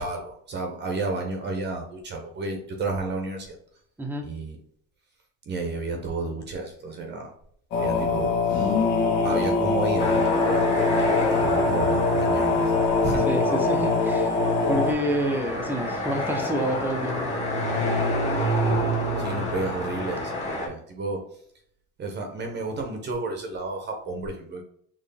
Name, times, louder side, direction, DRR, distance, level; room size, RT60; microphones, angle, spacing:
voice 1, 0.0-3.6 4.2-4.6 5.5-7.3 7.8-8.3 9.2-10.7 11.4-13.3 19.0-21.2 22.0-24.6, right 3 dB, 35° right, 3 dB, 0.8 m, -31 dB
sound 1, 7.7-14.9, left 3 dB, 70° left, 1.5 m, -23 dB
sound 2, 10.0-20.7, equal, 20° left, 1.3 m, -29 dB
voice 2, 13.3-14.4 14.7-17.3, equal, 5° right, 2 dB, 0.7 m, -28 dB
4.5 x 3.1 x 3.4 m, 0.65 s
cardioid pair, 140°, 31 cm